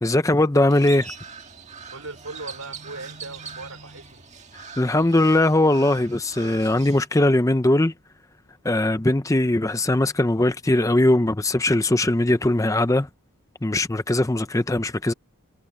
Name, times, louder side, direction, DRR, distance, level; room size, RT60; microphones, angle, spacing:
voice 1, 0.0-1.1 4.8-7.9 8.6-13.1 13.6-15.1, left 1 dB, 15° left, 0.6 m, -20 dB
Crow, 0.7-7.1, right 5 dB, 30° right, 1.7 m, -41 dB
voice 2, 1.9-4.3, right 3 dB, 75° right, 4.2 m, -39 dB
head